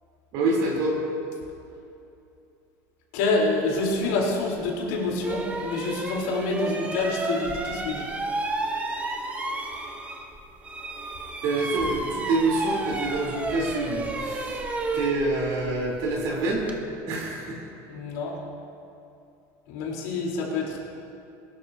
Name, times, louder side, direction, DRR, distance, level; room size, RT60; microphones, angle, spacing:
voice 1, 0.3-1.0 11.4-14.6 14.9-16.6 17.1-17.6, right 2 dB, 60° right, -3 dB, 3.6 m, -26 dB
voice 2, 3.1-8.1 17.9-18.4 19.7-20.8, left 3 dB, 80° left, -3 dB, 3.8 m, -27 dB
sound 1, 4.6-4.7 5.2-10.4 10.6-16.8, right 2 dB, 15° right, 1.0 m, -32 dB
21.5 x 12.5 x 2.8 m, 2.6 s
cardioid pair, 150°, 8 cm